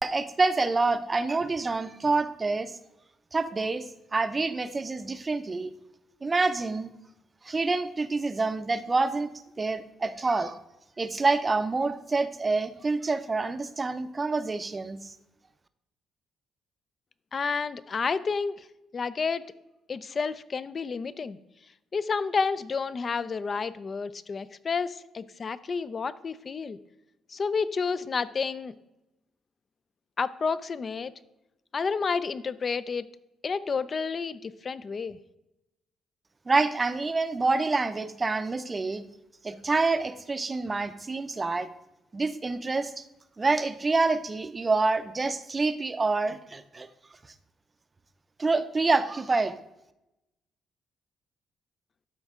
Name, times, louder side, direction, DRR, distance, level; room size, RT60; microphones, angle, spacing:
voice 1, 0.0-2.8 3.3-5.7 6.2-6.9 7.4-9.3 9.6-10.6 11.0-15.2 36.5-39.0 39.4-41.7 42.1-43.0 43.4-46.9 48.4-49.5, right 3 dB, 25° right, 11 dB, 0.5 m, -27 dB
voice 2, 17.3-18.7 18.9-19.4 19.9-21.4 21.9-26.8 27.3-28.7 30.2-31.1 31.7-33.1 33.4-35.2, left 5 dB, 40° left, 16 dB, 0.4 m, -30 dB
12.5 x 4.5 x 3.6 m, 0.92 s
cardioid pair, 90°, 0 cm